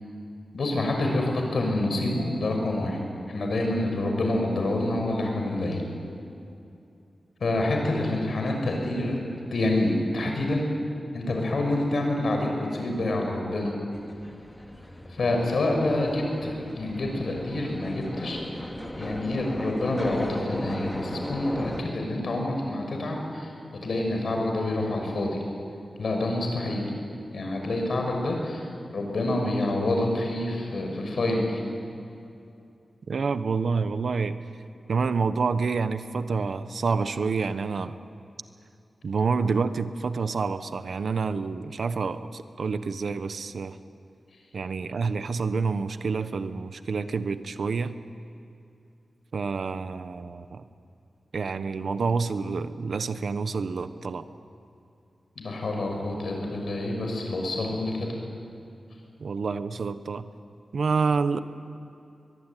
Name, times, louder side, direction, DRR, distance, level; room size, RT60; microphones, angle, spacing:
voice 1, 0.5-3.0 3.3-5.8 7.4-9.2 9.5-10.6 11.1-13.7 15.1-18.4 18.9-23.5 23.8-25.4 26.0-26.8 27.3-28.7 28.9-31.6 55.4-58.1, left 2 dB, 65° left, 2 dB, 5.9 m, -27 dB
sound 1, 13.9-21.8, equal, 10° left, 2.5 m, -37 dB
voice 2, 33.1-34.4 34.9-38.0 39.0-43.8 44.5-48.0 49.3-50.7 51.3-54.3 59.2-60.3 60.7-61.4, right 4 dB, 65° right, 11 dB, 1.1 m, -28 dB
23.5 x 21.5 x 9.2 m, 2.6 s
wide cardioid pair, 145°, 0 cm